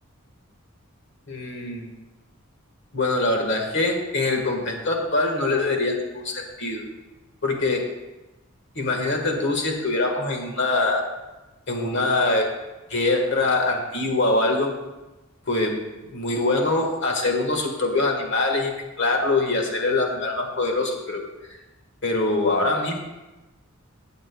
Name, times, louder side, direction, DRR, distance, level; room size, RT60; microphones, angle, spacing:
voice 1, 1.3-1.9 2.9-6.8 7.4-7.8 8.7-11.0 11.7-12.5 12.9-14.7 15.5-15.8 16.1-18.7 19.0-21.2 22.0-23.0, left 2 dB, 55° left, 2 dB, 1.6 m, -23 dB
16.0 x 7.8 x 2.3 m, 1.1 s
head